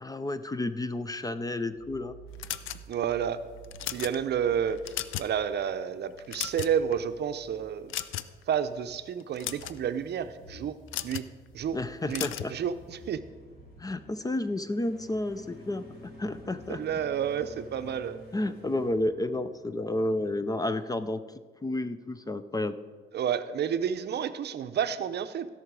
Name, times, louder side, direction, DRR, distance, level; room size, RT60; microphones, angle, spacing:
voice 1, 0.0-2.2 11.7-12.5 13.8-15.9 16.2-16.8 18.3-21.2 21.6-22.8, left 1 dB, 20° left, 12 dB, 0.5 m, -31 dB
sound 1, 1.7-19.8, right 2 dB, 50° left, 2.9 m, -52 dB
sound 2, 2.4-3.1 3.6-4.2 4.7-5.4 5.7-5.8 6.2-6.9 7.9-8.4 9.2-9.8 10.9-11.3 12.1-12.5, left 12 dB, 80° left, 0.5 m, -35 dB
voice 2, 2.9-3.4 3.9-7.9 8.5-10.8 11.0-11.3 11.5-11.8 12.1-13.2 16.7-18.2 23.1-25.5, right 8 dB, 60° right, 10 dB, 0.6 m, -30 dB
16.5 x 5.8 x 4.7 m, 1.5 s
cardioid pair, 90°, 20 cm